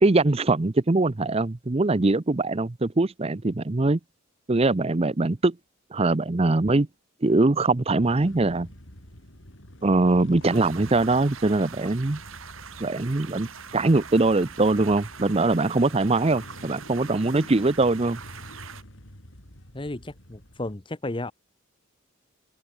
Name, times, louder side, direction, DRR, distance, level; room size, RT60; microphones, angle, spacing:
voice 1, 0.0-4.0 4.5-5.5 5.9-6.9 7.2-8.7 9.8-12.2 12.8-13.5 13.7-18.2, right 2 dB, 30° right, 0.6 m, -22 dB
sound 1, 8.0-20.7, equal, 65° left, 6.7 m, -47 dB
sound 2, 10.4-18.8, right 7 dB, 70° right, 2.1 m, -43 dB
voice 2, 19.7-21.3, left 2 dB, 25° left, 0.9 m, -33 dB
head